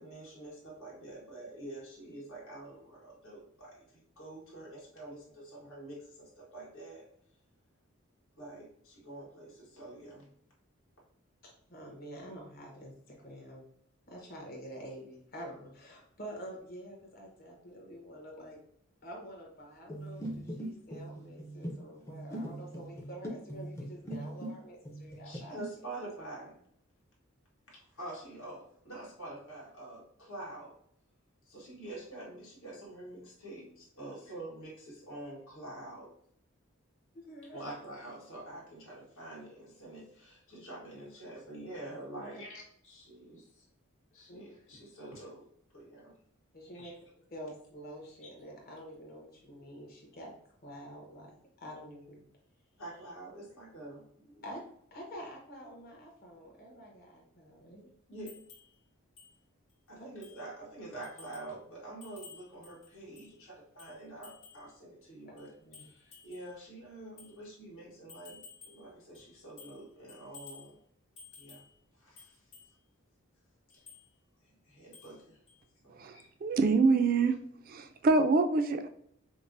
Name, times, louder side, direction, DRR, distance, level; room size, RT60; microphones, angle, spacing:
voice 1, 0.0-7.1 8.4-10.3 25.2-26.6 27.7-30.7 31.4-36.1 37.5-43.6 44.1-45.4 45.7-46.2 46.7-46.9 52.8-54.4 58.1-58.3 59.9-65.5 65.8-70.8 71.3-71.6 72.0-72.4 73.7-73.8 74.4-75.4 75.8-76.3 77.2-77.3, right 2 dB, 80° left, -4 dB, 1.3 m, -47 dB
voice 2, 11.4-13.6 14.1-18.6 19.0-25.8 26.2-26.3 37.1-37.6 42.1-42.4 44.3-44.5 46.5-46.9 47.3-50.3 50.6-51.3 51.6-52.2 54.4-54.6 54.9-57.9 60.0-60.1 65.3-65.4 65.6-65.9, equal, 45° left, -2 dB, 1.0 m, -47 dB
sound 1, 19.9-24.6 24.8-25.7, right 1 dB, 15° left, 0.5 m, -41 dB
sound 2, 58.3-58.7 59.2-59.3 59.7-59.8 60.2-60.5 61.0-61.5 62.0-63.3 63.8-64.7 65.4-66.5 67.2-67.4 68.1-68.9 69.1-69.8 70.1-70.7 71.2-71.7 72.2-72.7 73.7-74.1 74.9-75.2 75.5-75.6, left 5 dB, 60° left, 1.4 m, -54 dB
voice 3, 76.0-77.3 77.7-78.9, right 3 dB, 40° right, 8 dB, 0.3 m, -26 dB
5.2 x 2.0 x 2.6 m, 0.69 s
head